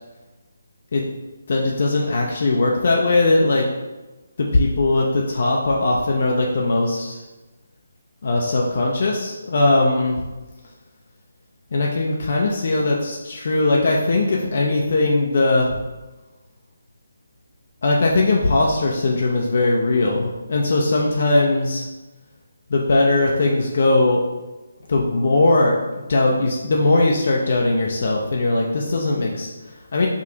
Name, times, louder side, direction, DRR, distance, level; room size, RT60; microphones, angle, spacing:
voice 1, 1.5-3.7 4.4-7.2 8.2-10.3 11.7-15.8 17.8-21.8 22.7-24.2 24.9-30.1, left 2 dB, 55° left, -2 dB, 0.5 m, -19 dB
4.8 x 2.4 x 2.8 m, 1.1 s
figure-of-eight pair, 150°, 0 cm